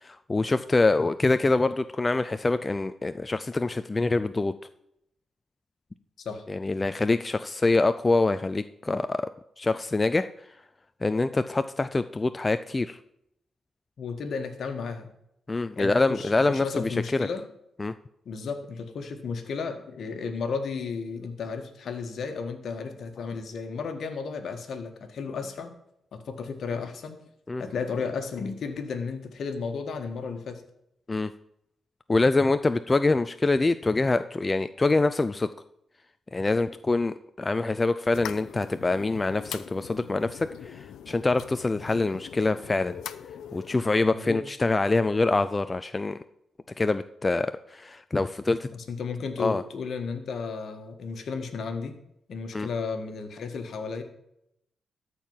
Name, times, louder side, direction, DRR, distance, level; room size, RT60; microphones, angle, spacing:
voice 1, 0.0-4.5 6.5-9.3 9.6-10.3 11.0-13.0 15.5-17.3 17.8-17.9 27.5-27.6 31.1-31.3 32.1-35.5 36.3-43.0 43.5-46.2 46.8-48.7 49.4-49.6 52.5-52.7, left 3 dB, 25° left, 11 dB, 0.4 m, -25 dB
voice 2, 14.0-15.1 15.7-17.4 18.2-25.7 26.1-27.2 27.6-30.6 44.0-44.4 48.7-51.9 52.3-54.0, left 5 dB, 65° left, 6 dB, 1.6 m, -33 dB
sound 1, 38.1-43.8, left 9 dB, 85° left, 0.6 m, -42 dB
13.0 x 4.6 x 7.3 m, 0.78 s
cardioid pair, 95°, 0 cm